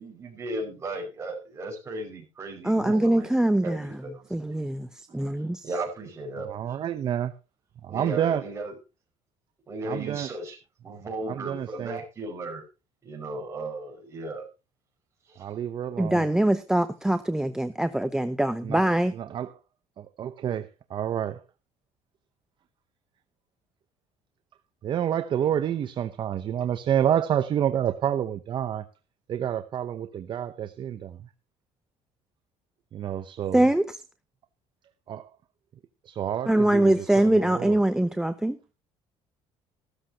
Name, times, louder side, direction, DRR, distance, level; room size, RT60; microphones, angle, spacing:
voice 1, 0.0-4.6 5.6-6.7 7.9-8.7 9.7-10.6 10.8-12.6 13.0-14.5 15.3-15.5, right 2 dB, 25° right, 5.5 m, -36 dB
voice 2, 2.6-4.0 4.3-4.9 5.1-5.7 16.0-19.1 33.5-33.9 36.5-38.6, right 1 dB, 5° right, 0.6 m, -23 dB
voice 3, 6.4-7.4 7.8-8.5 9.8-10.4 11.2-12.0 15.4-16.3 18.6-19.6 20.0-21.4 24.8-28.9 29.3-31.3 32.9-33.7 35.1-35.3 36.0-37.8, right 10 dB, 45° right, 0.8 m, -29 dB
15.0 x 13.0 x 2.8 m
cardioid pair, 135°, 12 cm